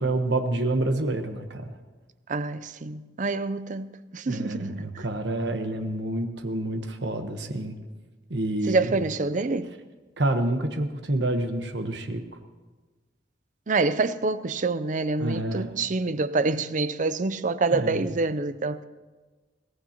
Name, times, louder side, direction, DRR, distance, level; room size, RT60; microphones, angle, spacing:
voice 1, 0.0-1.7 4.3-7.8 8.3-8.9 10.2-12.2 15.2-15.9 17.7-18.0, right 2 dB, 80° right, 1.2 m, -28 dB
voice 2, 2.3-5.1 8.6-9.7 13.7-18.8, right 3 dB, 45° right, 0.6 m, -27 dB
22.0 x 17.0 x 2.9 m
head